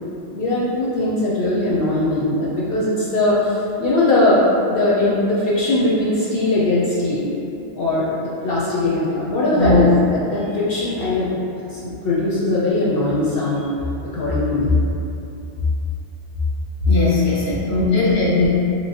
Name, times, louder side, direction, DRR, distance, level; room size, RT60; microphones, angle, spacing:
voice 1, 0.3-4.4 4.7-7.2 7.7-11.3 11.7-13.7 14.0-14.7, left 2 dB, 65° left, -7 dB, 0.7 m, -20 dB
voice 2, 9.6-10.0 16.8-18.5, left 3 dB, 20° left, -8 dB, 0.5 m, -18 dB
3.0 x 2.9 x 2.7 m, 2.8 s
omnidirectional pair, 1.2 m